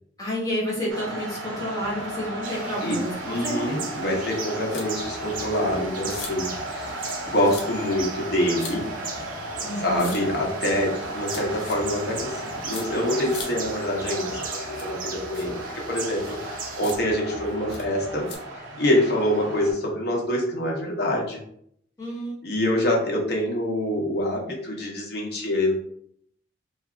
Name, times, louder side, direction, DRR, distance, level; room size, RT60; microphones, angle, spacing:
voice 1, 0.2-3.9 9.6-10.1 22.0-22.3, equal, 20° left, -6 dB, 1.2 m, -30 dB
sound 1, 0.9-19.7, right 1 dB, 85° right, 0.8 m, -35 dB
sound 2, 2.4-17.0, right 5 dB, 45° right, 0.4 m, -39 dB
voice 2, 2.8-8.9 9.8-15.5 15.9-18.3 18.8-21.4 22.4-25.7, left 1 dB, 55° left, -2 dB, 0.9 m, -26 dB
sound 3, 4.7-4.9 5.4-5.5 6.1-6.3 7.0-7.2 7.4-7.6 8.6-8.7 10.0-10.2 11.2-11.7 12.7-12.8 13.3-13.5 14.7-14.9 15.3-15.4 16.2-16.4 16.8-16.9 17.7-17.8 18.3-18.4, left 4 dB, 85° left, 0.7 m, -38 dB
2.7 x 2.3 x 3.6 m, 0.68 s
head